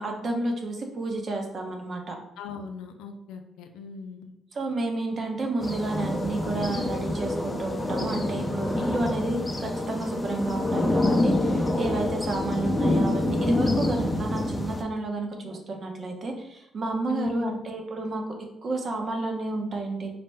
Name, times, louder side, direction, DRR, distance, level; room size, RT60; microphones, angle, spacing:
voice 1, 0.0-2.1 4.5-18.2 18.6-20.1, right 2 dB, 50° right, 2 dB, 0.7 m, -31 dB
voice 2, 2.4-4.3 17.1-17.7, left 5 dB, 90° left, 5 dB, 0.3 m, -37 dB
sound 1, 5.6-14.8, left 1 dB, 15° left, 0.5 m, -26 dB
4.1 x 2.1 x 3.4 m, 0.90 s
cardioid pair, 75°, 0 cm